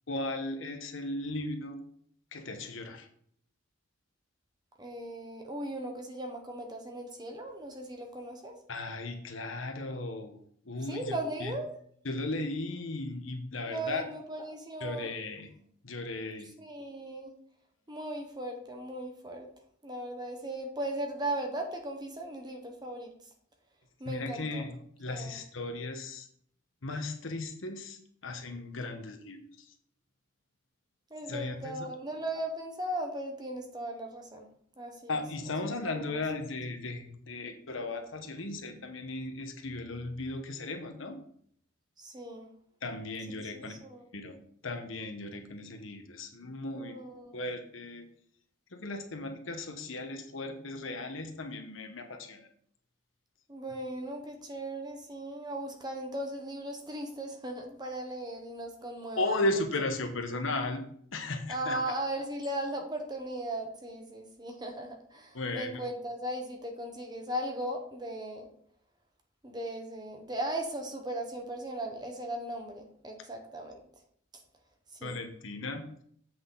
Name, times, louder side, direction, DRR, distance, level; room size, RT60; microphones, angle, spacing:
voice 1, 0.1-1.8 2.3-3.1 8.7-10.4 10.6-11.6 12.0-14.1 14.8-15.5 15.8-16.5 24.0-26.3 26.8-29.7 31.3-31.9 35.1-41.2 42.8-43.7 44.1-44.4 44.6-47.0 47.3-48.1 48.7-52.5 59.2-60.8 61.1-61.8 65.3-65.8 75.0-75.9, left 2 dB, 75° left, 5 dB, 1.2 m, -36 dB
voice 2, 4.8-8.5 10.8-11.7 13.6-15.1 16.4-17.3 17.9-19.5 19.8-23.1 24.0-24.6 25.1-25.4 31.1-34.5 34.8-36.4 42.0-42.5 43.4-44.0 46.7-47.4 53.5-59.6 61.5-68.5 69.4-73.8 74.3-74.4 74.9-75.2, right 1 dB, 20° right, 3 dB, 1.2 m, -38 dB
7.9 x 6.2 x 3.9 m, 0.63 s
head